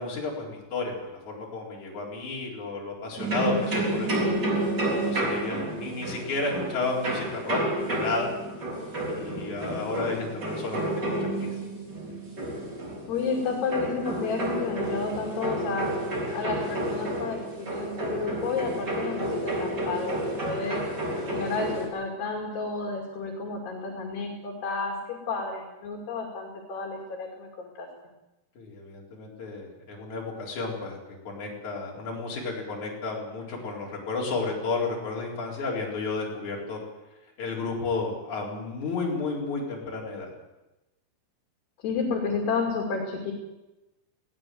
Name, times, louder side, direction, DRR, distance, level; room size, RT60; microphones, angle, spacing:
voice 1, 0.0-4.3 4.9-7.6 7.9-8.3 9.1-10.9 11.2-11.5 28.6-36.8 37.4-40.3, left 3 dB, 45° left, -2 dB, 5.4 m, -32 dB
sound 1, 3.2-21.9, right 1 dB, 25° right, 3.5 m, -30 dB
voice 2, 13.1-15.9 16.3-17.4 17.7-20.2 20.4-20.8 21.3-24.9 25.3-27.9 41.8-43.3, left 4 dB, 70° left, 1 dB, 4.5 m, -31 dB
20.0 x 17.0 x 7.8 m, 1.0 s
omnidirectional pair, 5.0 m